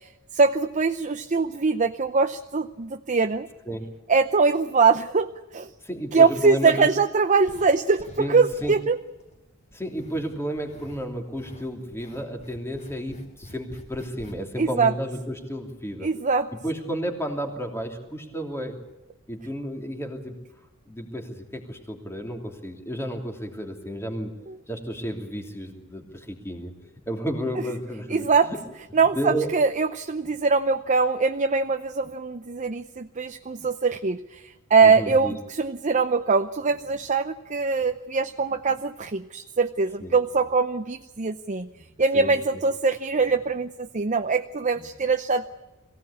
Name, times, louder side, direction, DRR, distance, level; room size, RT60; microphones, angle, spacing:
voice 1, 0.0-3.5 4.1-5.7 6.1-9.0 14.6-14.9 16.0-16.5 24.5-24.6 28.1-28.5 28.9-41.7 42.0-45.5, right 4 dB, 35° right, 8 dB, 0.7 m, -22 dB
voice 2, 5.8-6.9 8.2-8.8 9.7-16.1 16.6-18.8 19.3-20.4 20.8-28.6 29.1-29.5 34.8-35.3 40.0-40.1 42.1-42.6, equal, 10° left, 3 dB, 2.9 m, -32 dB
sound 1, 7.5-8.3 8.5-9.4 9.7-11.1 11.3-14.4 14.7-14.8, left 1 dB, 35° left, 4.1 m, -46 dB
23.0 x 17.0 x 8.5 m, 1.1 s
head